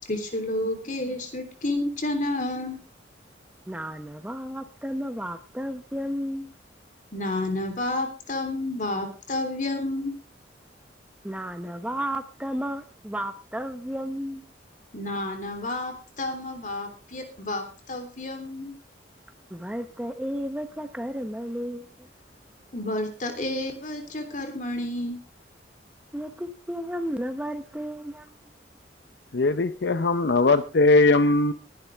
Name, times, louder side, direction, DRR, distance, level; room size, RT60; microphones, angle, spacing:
voice 1, 0.0-2.8 7.1-10.1 14.9-18.7 22.7-25.2, left 1 dB, 45° left, 3.4 m, -30 dB
voice 2, 3.7-6.5 11.2-14.5 19.5-22.1 26.1-28.3, equal, 5° right, 0.8 m, -33 dB
voice 3, 29.3-31.5, left 3 dB, 65° left, 0.7 m, -20 dB
19.0 x 11.5 x 3.5 m
head